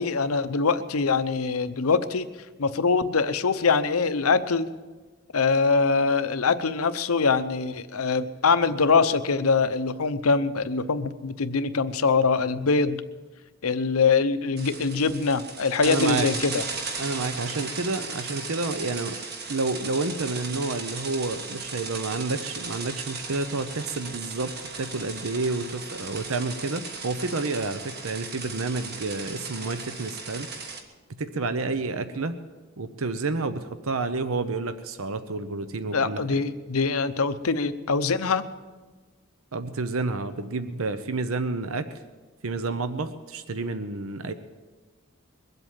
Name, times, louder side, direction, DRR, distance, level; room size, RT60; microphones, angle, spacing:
voice 1, 0.0-2.3 2.6-4.7 5.3-13.0 13.6-16.6 35.9-38.4, left 4 dB, 80° left, 12 dB, 0.8 m, -23 dB
sound 1, 14.6-30.8, right 4 dB, 45° right, 1.5 m, -36 dB
voice 2, 15.8-16.3 17.0-19.2 19.5-30.5 31.2-32.3 32.8-36.2 39.5-41.9 42.4-44.3, right 3 dB, 75° right, 11 dB, 0.8 m, -29 dB
22.0 x 8.0 x 7.3 m, 1.3 s
head